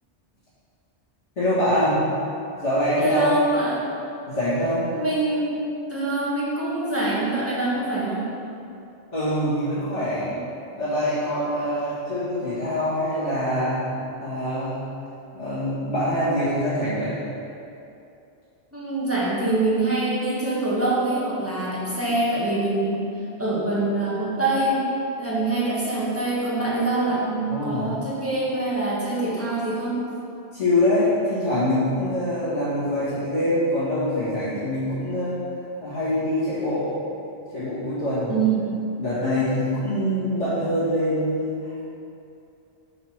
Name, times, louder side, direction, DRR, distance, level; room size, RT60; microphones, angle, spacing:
voice 1, 1.4-2.1 2.6-3.3 4.3-4.9 9.1-10.3 10.8-13.9 14.2-14.8 15.3-17.2 27.5-27.9 30.5-35.4 35.8-37.0 37.5-38.3 39.0-41.8, left 1 dB, 80° left, -14 dB, 2.3 m, -24 dB
voice 2, 3.0-3.9 4.9-5.6 5.9-8.3 18.7-23.0 23.4-24.9 25.2-30.0 38.3-38.8, right 2 dB, 10° right, -7 dB, 1.6 m, -24 dB
6.5 x 4.7 x 5.8 m, 2.7 s
omnidirectional pair, 1.2 m